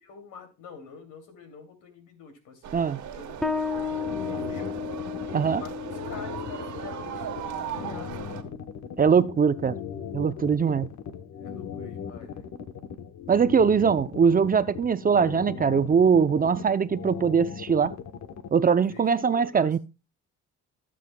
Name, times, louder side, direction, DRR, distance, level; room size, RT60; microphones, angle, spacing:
voice 1, 0.0-2.8 3.2-4.8 5.5-8.6 11.4-12.5 18.9-19.8, left 5 dB, 85° left, 2.7 m, -46 dB
sound 1, 2.6-8.4, right 9 dB, 70° right, 1.3 m, -38 dB
Bass guitar, 3.4-10.6, left 5 dB, ahead, 0.8 m, -36 dB
sound 2, 3.7-18.5, left 8 dB, 70° left, 1.0 m, -38 dB
voice 2, 9.0-9.7 10.1-10.9 13.3-17.9 18.5-19.8, right 6 dB, 30° right, 0.5 m, -22 dB
16.0 x 7.6 x 2.2 m
cardioid pair, 90°, 30 cm